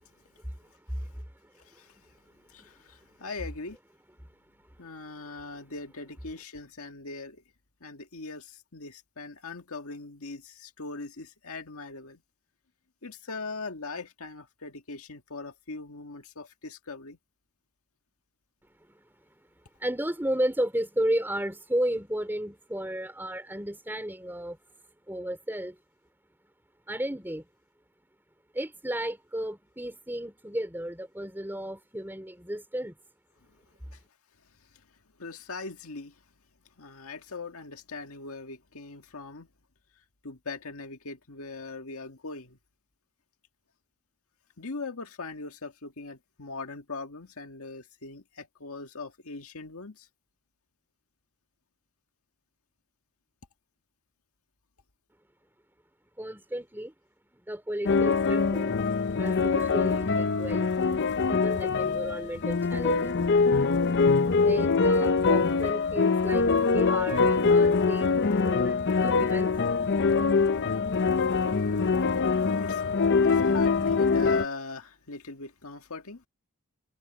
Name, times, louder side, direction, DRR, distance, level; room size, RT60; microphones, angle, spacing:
voice 1, 0.4-1.2 2.6-2.7 3.1-3.2 18.9-19.0 19.8-24.6 25.1-25.8 26.9-27.5 28.5-32.9 56.2-56.9 57.5-58.8 59.0-61.0 61.2-63.1 64.4-69.5, right 1 dB, 10° right, 3.6 m, -33 dB
voice 2, 1.7-2.0 2.5-3.8 4.8-7.4 7.8-12.2 13.0-17.2 33.9-34.0 35.2-36.2 36.8-39.5 40.2-42.6 44.6-50.1 72.3-76.2, left 3 dB, 70° left, 1.9 m, -40 dB
sound 1, 57.8-74.4, left 4 dB, 50° left, 0.6 m, -24 dB
head